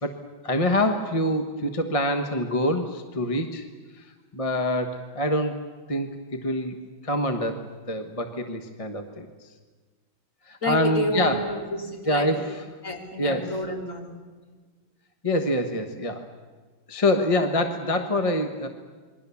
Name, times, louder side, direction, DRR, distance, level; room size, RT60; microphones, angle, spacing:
voice 1, 0.4-3.6 4.0-4.1 4.3-5.6 5.9-9.5 10.5-11.4 12.1-12.6 13.2-13.5 15.2-16.3 16.9-18.7, left 1 dB, 20° left, 5 dB, 1.1 m, -26 dB
voice 2, 10.6-12.4 12.8-14.2, equal, 40° left, 1 dB, 3.5 m, -29 dB
28.0 x 22.0 x 7.1 m, 1.4 s
omnidirectional pair, 2.2 m